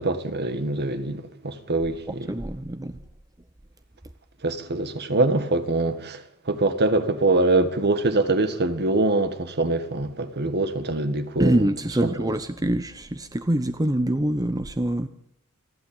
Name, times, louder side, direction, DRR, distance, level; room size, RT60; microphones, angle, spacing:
voice 1, 0.0-2.3 4.4-11.6 12.0-12.1, right 2 dB, 50° right, 1.9 m, -24 dB
voice 2, 2.3-3.0 11.4-15.1, right 1 dB, 15° right, 0.8 m, -25 dB
28.5 x 11.5 x 9.1 m
head